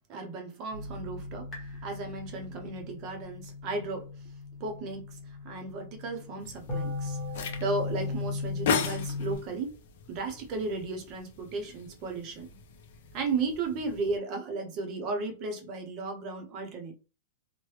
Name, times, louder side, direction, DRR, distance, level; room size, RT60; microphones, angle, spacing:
voice 1, 0.1-1.5 1.8-4.1 4.6-7.2 7.6-9.8 10.1-12.5 13.1-17.0, right 3 dB, 25° right, 0.6 m, -34 dB
sound 1, 0.7-9.4, left 3 dB, 10° left, 1.1 m, -38 dB
sound 2, 6.4-14.2, left 6 dB, 45° left, 0.5 m, -37 dB
3.1 x 2.1 x 3.1 m
supercardioid pair, 180°, 0 cm